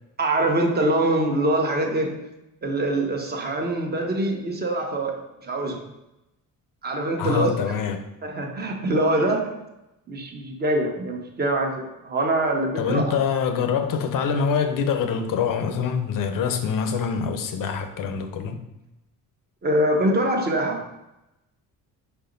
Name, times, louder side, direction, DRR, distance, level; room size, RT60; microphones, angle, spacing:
voice 1, 0.2-2.2 2.6-5.8 6.8-7.5 8.2-9.5 10.1-13.2 19.6-20.9, right 1 dB, 30° right, 2 dB, 1.1 m, -24 dB
voice 2, 7.2-8.0 12.8-18.6, left 6 dB, 70° left, 7 dB, 0.9 m, -25 dB
4.9 x 4.5 x 5.3 m, 0.93 s
cardioid pair, 150°, 34 cm